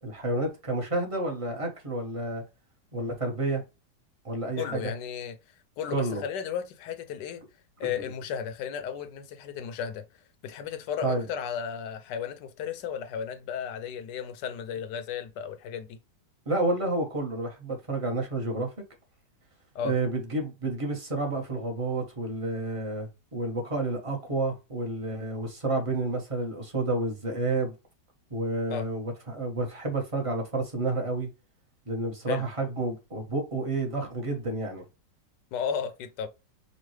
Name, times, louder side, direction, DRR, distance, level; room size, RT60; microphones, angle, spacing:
voice 1, 0.0-2.4 2.9-3.6 4.2-4.9 5.9-6.2 8.0-8.1 11.0-11.3 16.5-18.7 19.8-27.7 28.3-31.3 31.9-34.8, right 2 dB, 25° right, 0.9 m, -30 dB
voice 2, 4.6-5.4 5.8-7.4 7.8-10.0 10.4-16.0 19.7-19.9 28.7-28.9 32.3-32.4 35.5-36.3, left 7 dB, 75° left, 1.2 m, -34 dB
5.4 x 2.3 x 3.1 m
omnidirectional pair, 1.9 m